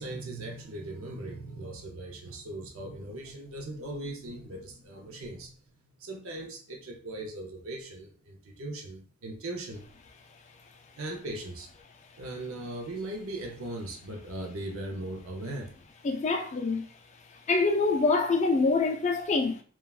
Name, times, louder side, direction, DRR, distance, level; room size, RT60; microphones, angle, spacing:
voice 1, 0.0-9.9 11.0-11.7 12.2-15.7, right 1 dB, 70° right, 0.6 m, -39 dB
voice 2, 16.0-16.9 17.5-19.6, left 3 dB, 30° left, 0.3 m, -25 dB
3.3 x 2.3 x 2.3 m
head